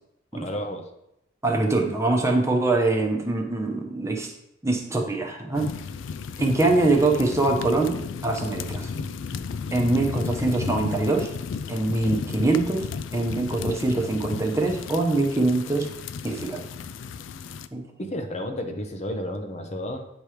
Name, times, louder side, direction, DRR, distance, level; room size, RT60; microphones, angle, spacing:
voice 1, 0.3-0.9 18.0-20.1, left 1 dB, 35° left, 5 dB, 0.6 m, -32 dB
voice 2, 1.4-4.3 4.6-5.8 6.4-8.9 9.7-11.3 11.7-12.9 13.1-15.9 16.2-16.6 17.7-17.8, right 2 dB, 15° right, 1 dB, 0.9 m, -23 dB
sound 1, 5.5-17.7, left 5 dB, 80° left, 0.3 m, -34 dB
8.6 x 3.0 x 4.9 m, 0.83 s
head